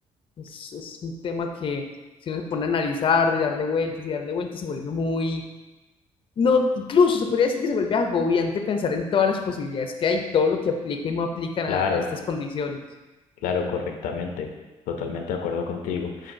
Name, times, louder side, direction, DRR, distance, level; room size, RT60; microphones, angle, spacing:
voice 1, 0.4-1.8 2.3-5.4 6.4-12.8, left 5 dB, 40° left, 5 dB, 0.5 m, -24 dB
voice 2, 11.7-12.0 13.4-14.5 14.9-16.3, left 6 dB, 90° left, 4 dB, 0.5 m, -28 dB
7.1 x 2.6 x 2.6 m, 1.1 s
cardioid pair, 100°, 13 cm